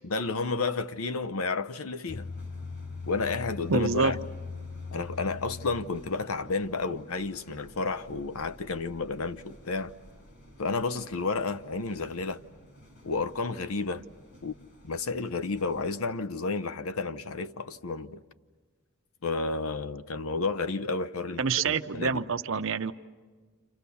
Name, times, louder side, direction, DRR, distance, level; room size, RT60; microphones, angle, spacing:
voice 1, 0.0-2.3 3.0-4.2 4.9-9.9 10.6-12.4 13.0-14.0 14.4-14.5 14.8-18.2 19.2-22.2, left 3 dB, 75° left, 0.8 m, -31 dB
sound 1, 2.1-15.9, left 3 dB, 50° left, 4.8 m, -45 dB
voice 2, 3.7-4.1 21.4-22.9, right 5 dB, 60° right, 0.7 m, -27 dB
29.5 x 27.5 x 7.0 m
head